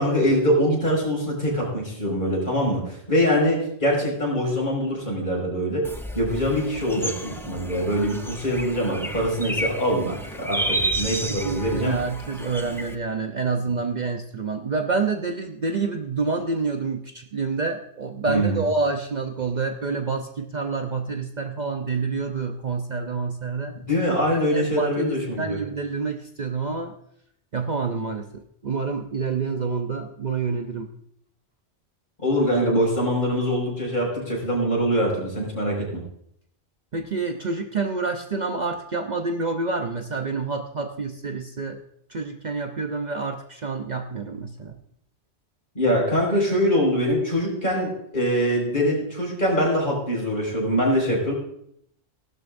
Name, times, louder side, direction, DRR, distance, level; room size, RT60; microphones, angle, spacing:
voice 1, 0.0-5.9 6.1-11.9 18.3-18.6 23.8-25.6 32.2-36.0 45.8-51.3, equal, 45° left, -3 dB, 5.6 m, -23 dB
sound 1, 5.8-13.0, right 1 dB, 5° left, 0.5 m, -31 dB
voice 2, 11.3-23.7 24.3-26.9 27.5-30.9 36.9-41.8 42.1-44.8, right 4 dB, 45° right, 4 dB, 0.8 m, -28 dB
18.0 x 12.0 x 2.6 m, 0.71 s
omnidirectional pair, 1.1 m